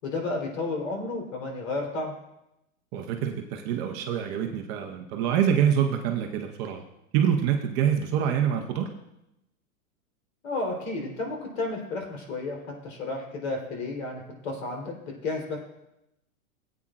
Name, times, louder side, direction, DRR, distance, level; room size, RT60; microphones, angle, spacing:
voice 1, 0.0-2.1 10.4-12.6 12.8-15.6, left 2 dB, 65° left, 1 dB, 3.8 m, -32 dB
voice 2, 2.9-6.8 7.1-8.9, right 8 dB, 25° right, 3 dB, 0.7 m, -26 dB
18.5 x 8.7 x 2.5 m, 0.86 s
hypercardioid pair, 150°, 43 cm